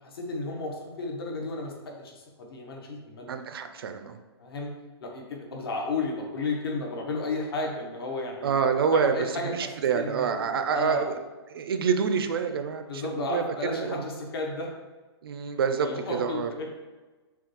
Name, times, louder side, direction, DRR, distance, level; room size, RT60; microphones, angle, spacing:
voice 1, 0.0-3.3 4.4-4.7 5.0-8.7 8.9-10.3 10.7-11.1 12.9-14.7 15.8-16.8, left 2 dB, 60° left, 1 dB, 0.9 m, -33 dB
voice 2, 3.3-4.2 8.4-11.2 11.5-14.1 15.2-16.5, right 6 dB, 55° right, 8 dB, 0.4 m, -27 dB
5.7 x 2.3 x 2.9 m, 1.2 s
hypercardioid pair, 175°, 14 cm